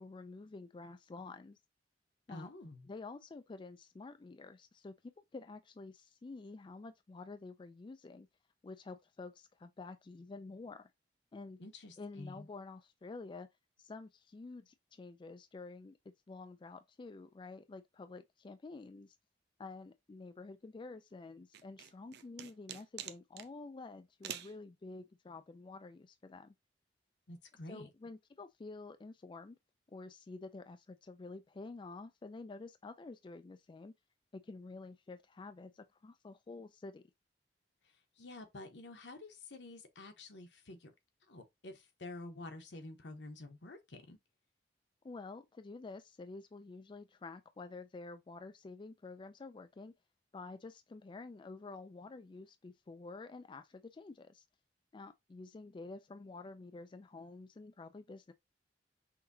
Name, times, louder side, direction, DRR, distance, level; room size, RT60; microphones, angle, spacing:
voice 1, 0.0-1.6 2.3-2.5 2.9-4.9 5.3-8.3 8.6-10.9 11.3-11.6 12.0-13.5 13.8-16.0 16.3-19.2 19.6-26.5 27.7-29.6 29.9-33.9 34.3-37.0 45.0-49.9 50.3-54.4 54.9-58.3, left 3 dB, 30° left, 0.3 m, -49 dB
voice 2, 2.3-2.9 11.6-12.5 27.3-27.9 38.2-40.9 41.3-44.2, left 2 dB, 80° left, 1.0 m, -49 dB
sound 1, 21.5-23.5 24.2-24.5, right 10 dB, 65° right, 0.5 m, -45 dB
5.8 x 2.7 x 2.7 m
head